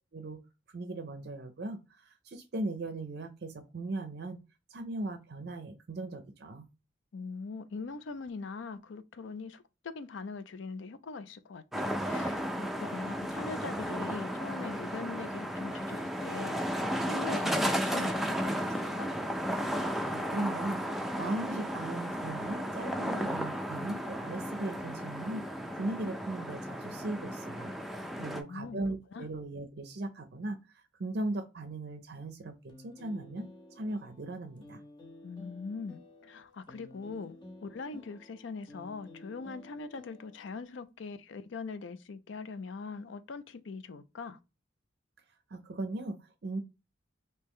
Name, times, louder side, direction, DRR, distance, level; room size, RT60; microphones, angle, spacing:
voice 1, 0.7-4.4 4.7-6.7 20.1-25.4 25.7-33.5 33.8-34.8 45.5-46.6, right 2 dB, 55° right, 0.5 m, -38 dB
voice 2, 7.1-19.1 28.2-28.8 29.1-29.3 35.2-44.4, left 4 dB, 75° left, 0.4 m, -42 dB
sound 1, 11.7-28.4, equal, ahead, 0.4 m, -34 dB
sound 2, 32.7-40.8, left 1 dB, 25° left, 0.7 m, -52 dB
3.1 x 2.8 x 3.5 m
head